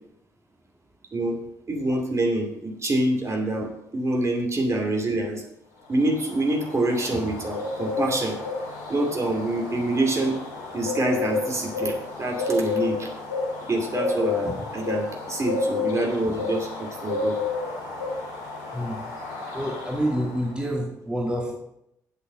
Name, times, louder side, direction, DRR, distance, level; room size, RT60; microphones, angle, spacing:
voice 1, 1.7-5.4 5.9-8.4 8.9-10.4 10.7-13.1 13.7-17.4, right 2 dB, 35° right, 1 dB, 2.5 m, -26 dB
sound 1, 5.9-20.5, left 3 dB, 80° left, 1.9 m, -31 dB
voice 2, 18.7-19.0 19.5-21.6, equal, 10° right, -1 dB, 2.2 m, -27 dB
8.1 x 8.0 x 6.4 m, 0.80 s
figure-of-eight pair, 40°, 9 cm